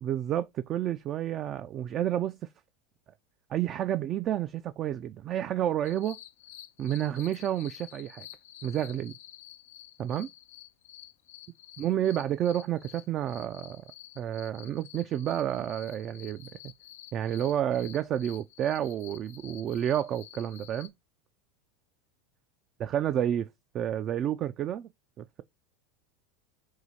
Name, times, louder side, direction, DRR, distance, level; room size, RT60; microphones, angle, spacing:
voice 1, 0.0-2.4 3.5-6.2 6.8-8.3 8.6-9.1 10.0-10.3 11.8-13.8 14.2-16.7 17.1-20.9 22.8-23.5 23.7-24.9 25.2-25.4, right 11 dB, 40° right, 0.3 m, -30 dB
sound 1, 5.8-20.9, left 13 dB, 80° left, 0.4 m, -50 dB
4.6 x 2.4 x 4.1 m
hypercardioid pair, 105°, 0 cm